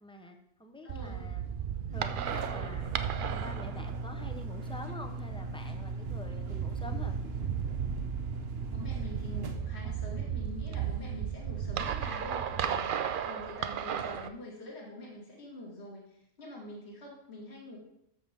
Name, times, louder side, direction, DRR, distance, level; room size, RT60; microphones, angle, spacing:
voice 1, 0.0-1.4 1.9-2.9 3.3-7.2, left 2 dB, 5° left, 4 dB, 0.5 m, -46 dB
voice 2, 0.8-1.3 8.7-17.8, left 1 dB, 45° left, -2 dB, 2.3 m, -45 dB
sound 1, 0.9-14.3, right 8 dB, 85° right, 0.4 m, -35 dB
sound 2, 1.9-9.7, right 2 dB, 50° right, 1.0 m, -39 dB
13.0 x 6.6 x 3.5 m, 0.79 s
omnidirectional pair, 1.5 m